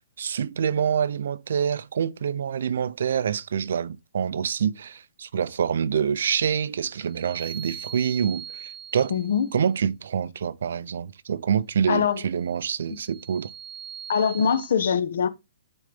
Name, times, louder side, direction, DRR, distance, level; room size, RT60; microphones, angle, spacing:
voice 1, 0.2-9.1 9.5-13.5, right 7 dB, 65° right, 0.6 m, -26 dB
sound 1, 7.0-9.6 12.6-14.7, right 8 dB, 5° right, 1.1 m, -41 dB
voice 2, 9.1-9.5 11.9-12.2 14.1-15.3, left 7 dB, 60° left, 1.0 m, -23 dB
9.7 x 3.9 x 3.4 m
hypercardioid pair, 170°, 0 cm